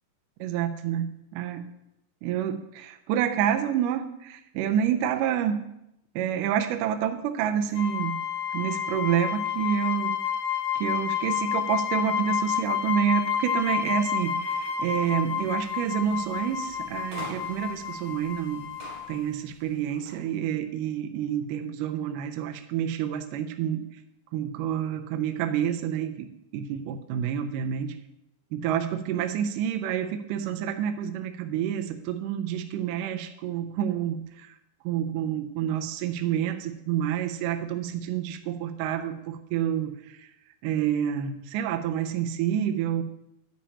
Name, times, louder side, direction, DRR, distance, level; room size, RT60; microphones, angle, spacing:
voice 1, 0.4-1.6 2.2-5.6 6.2-8.1 8.5-10.2 10.8-18.7 19.1-23.8 24.3-26.3 26.5-28.0 28.5-34.5 34.8-40.3 40.6-43.0, right 9 dB, 80° right, 7 dB, 2.1 m, -28 dB
sound 1, 7.7-19.2, left 8 dB, 85° left, 4.1 m, -30 dB
sound 2, 14.4-20.2, right 1 dB, 45° right, 3.7 m, -47 dB
10.0 x 10.0 x 2.9 m, 0.82 s
omnidirectional pair, 4.1 m